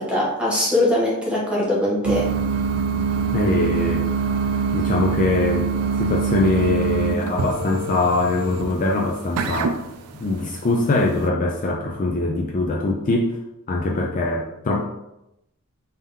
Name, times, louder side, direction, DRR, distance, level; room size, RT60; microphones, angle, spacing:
voice 1, 0.0-2.3, left 1 dB, 5° right, -5 dB, 1.1 m, -21 dB
sound 1, 2.0-11.3, right 5 dB, 85° right, 0.4 m, -24 dB
voice 2, 3.3-4.1 4.7-5.7 6.0-9.8 10.1-13.4 13.7-14.8, left 2 dB, 35° left, 0 dB, 0.4 m, -22 dB
3.5 x 2.8 x 3.6 m, 0.85 s
head